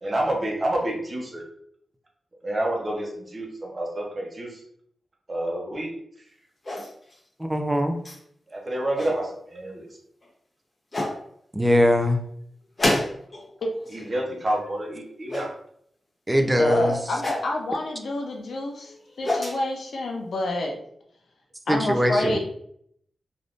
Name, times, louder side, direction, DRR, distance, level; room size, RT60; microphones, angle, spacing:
voice 1, 0.0-1.4 2.4-4.6 5.3-5.9 8.5-9.9 13.9-15.5, right 1 dB, 35° right, -1 dB, 0.8 m, -28 dB
sound 1, 6.6-7.2 8.0-8.2 8.7-9.2 10.2-10.3 10.9-11.2 12.8-13.5 13.7-14.2 15.3-15.5 17.2-17.5 18.9-19.6, left 1 dB, 35° left, 0.9 m, -27 dB
voice 2, 7.4-8.0 11.5-12.2 16.3-17.0 21.7-22.4, equal, 15° right, 5 dB, 0.4 m, -21 dB
voice 3, 16.4-20.7 21.7-22.4, left 2 dB, 75° left, 0 dB, 0.6 m, -28 dB
3.4 x 2.6 x 2.5 m, 0.70 s
wide cardioid pair, 100°, 0 cm